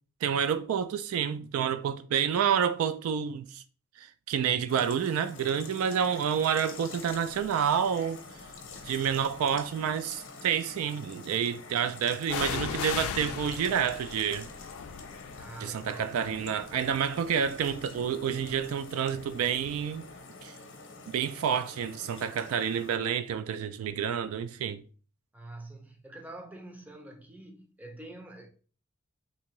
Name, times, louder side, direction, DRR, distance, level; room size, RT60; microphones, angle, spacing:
voice 1, 0.2-3.6 4.0-8.2 8.9-14.5 15.6-20.1 20.4-20.5 21.1-24.8, right 8 dB, 80° right, 0.3 m, -29 dB
sound 1, 4.7-23.0, left 4 dB, 60° left, 0.7 m, -47 dB
sound 2, 7.4-7.7 8.4-9.4 12.3-19.9 20.2-20.3, left 8 dB, 80° left, 0.3 m, -39 dB
voice 2, 15.3-16.2 25.3-28.5, right 2 dB, 10° right, 0.5 m, -46 dB
3.4 x 2.8 x 3.0 m
head